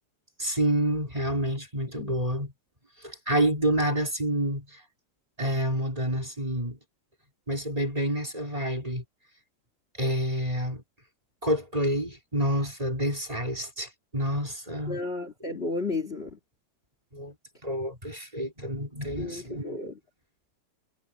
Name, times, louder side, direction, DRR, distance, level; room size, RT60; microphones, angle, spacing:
voice 1, 0.4-2.5 3.0-4.8 5.4-6.8 7.5-9.0 10.0-10.8 11.4-15.0 17.1-17.3 17.6-19.8, equal, 10° right, 3.0 m, -28 dB
voice 2, 14.9-16.4 19.2-19.9, left 3 dB, 50° left, 0.7 m, -33 dB
omnidirectional pair, 4.8 m